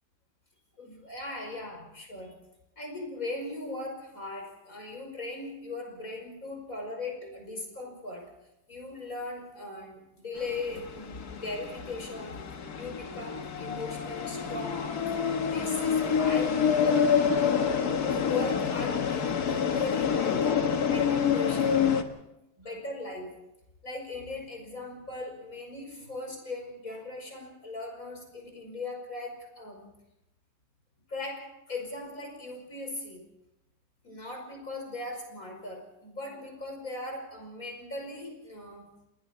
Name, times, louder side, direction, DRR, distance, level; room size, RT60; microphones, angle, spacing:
voice 1, 0.8-2.3 2.8-8.3 8.7-12.4 12.7-15.0 15.4-17.1 17.3-20.5 20.9-22.1 22.6-23.4 23.8-29.9 31.1-33.3 34.0-38.9, left 2 dB, 65° left, 2 dB, 5.8 m, -39 dB
sound 1, 10.4-22.0, left 7 dB, 85° left, 1.9 m, -27 dB
29.0 x 20.5 x 4.4 m, 0.90 s
omnidirectional pair, 1.6 m